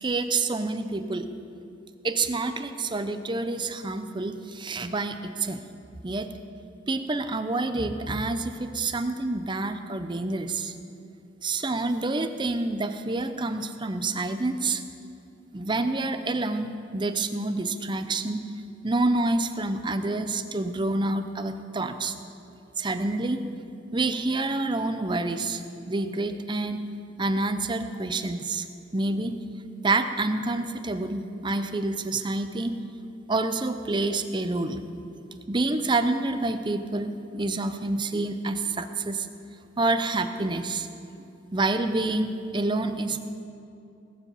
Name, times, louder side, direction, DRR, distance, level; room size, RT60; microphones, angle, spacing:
voice 1, 0.0-1.3 2.0-5.6 6.0-6.3 6.9-10.7 11.4-14.8 15.5-18.4 18.8-22.1 22.8-23.4 23.9-25.6 25.9-26.8 27.2-28.6 28.9-29.4 29.8-32.8 33.3-34.8 35.5-39.3 39.8-40.9 41.5-43.2, right 2 dB, 25° right, 9 dB, 0.7 m, -27 dB
18.5 x 7.4 x 7.1 m, 2.6 s
head